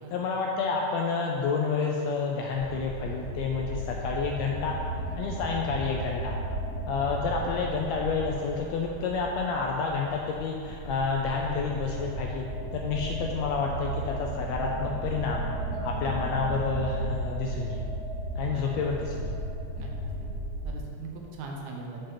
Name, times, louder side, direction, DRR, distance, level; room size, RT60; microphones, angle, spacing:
voice 1, 0.1-4.8 5.2-6.4 6.9-12.5 12.7-15.4 15.8-17.8 18.3-19.3, left 5 dB, 85° left, 0 dB, 1.5 m, -29 dB
sound 1, 2.5-20.7, right 1 dB, 40° right, 1.4 m, -35 dB
voice 2, 20.6-22.0, right 3 dB, 70° right, 0 dB, 2.0 m, -41 dB
5.7 x 5.2 x 5.8 m, 2.5 s
omnidirectional pair, 3.6 m